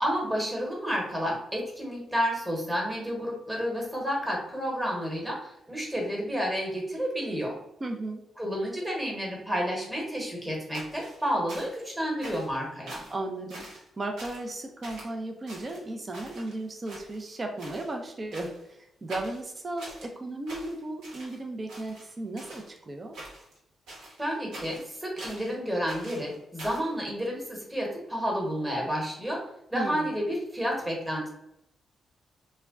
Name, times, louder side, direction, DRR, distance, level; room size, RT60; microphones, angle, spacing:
voice 1, 0.0-7.6 8.4-13.0 24.2-29.4 29.7-31.3, equal, 10° right, -2 dB, 1.1 m, -30 dB
voice 2, 7.8-8.2 13.1-13.7 14.0-23.2 29.7-30.1, right 2 dB, 35° right, 3 dB, 0.5 m, -35 dB
sound 1, 10.7-11.9 12.2-12.6 12.9-13.2 13.5-13.9 14.2-14.5 14.8-15.1 15.5-16.6 16.9-17.3 17.6-17.9 18.3-18.7 19.1-20.1 20.5-21.4 21.7-22.7 23.1-23.6 23.9-25.5 25.9-26.9, right 1 dB, 90° right, 1.0 m, -44 dB
2.2 x 2.1 x 3.6 m, 0.80 s
cardioid pair, 75°, 0 cm